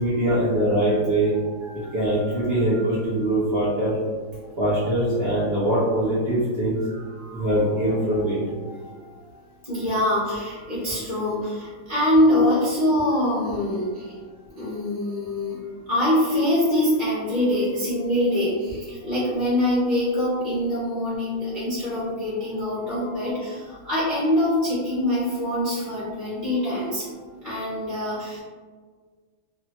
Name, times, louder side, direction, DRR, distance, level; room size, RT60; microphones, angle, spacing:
voice 1, 0.0-1.3 1.9-3.9 4.6-6.8 7.3-8.4, right 1 dB, 85° right, -9 dB, 0.5 m, -22 dB
voice 2, 1.5-3.1 4.4-4.7 6.8-7.6 7.9-8.3 8.6-14.2 14.6-15.6 15.9-28.4, left 1 dB, 80° left, -10 dB, 0.4 m, -25 dB
3.5 x 2.1 x 2.8 m, 1.5 s
omnidirectional pair, 2.2 m